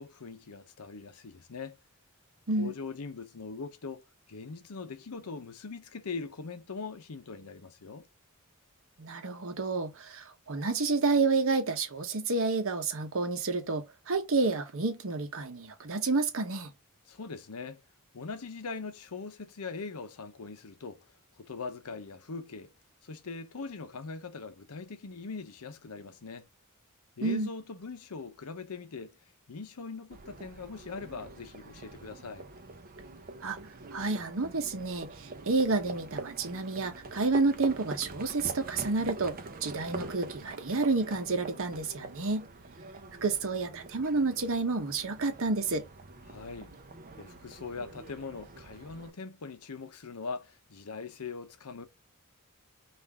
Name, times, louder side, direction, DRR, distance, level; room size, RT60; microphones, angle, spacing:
voice 1, 0.0-1.8 2.5-8.1 17.1-17.8 18.1-22.7 23.0-26.5 27.2-29.1 29.5-32.5 46.3-46.7 47.2-51.9, left 4 dB, 85° left, 0.7 m, -41 dB
voice 2, 9.0-16.7 27.2-27.5 33.4-33.6 33.9-42.5 43.2-45.9, right 3 dB, 65° right, 0.9 m, -30 dB
Livestock farm animals working animals, 30.1-49.1, right 3 dB, 40° right, 0.7 m, -44 dB
5.5 x 2.6 x 3.4 m
head